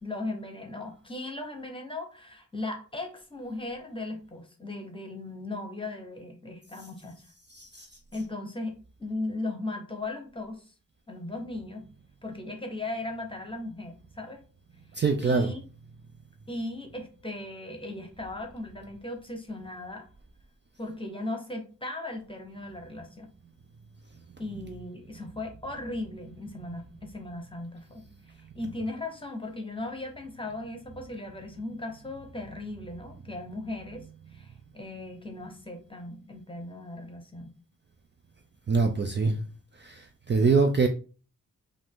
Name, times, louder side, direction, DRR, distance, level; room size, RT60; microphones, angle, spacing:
voice 1, 0.0-7.2 8.1-10.7 11.1-11.9 12.2-14.4 15.2-15.6 16.5-20.0 20.8-23.3 24.4-37.5, left 2 dB, 15° left, 4 dB, 0.9 m, -37 dB
voice 2, 7.6-7.9 15.0-15.5 38.7-39.4 39.8-40.9, right 4 dB, 35° right, 4 dB, 0.4 m, -24 dB
5.3 x 2.6 x 3.5 m, 0.37 s
wide cardioid pair, 155°, 33 cm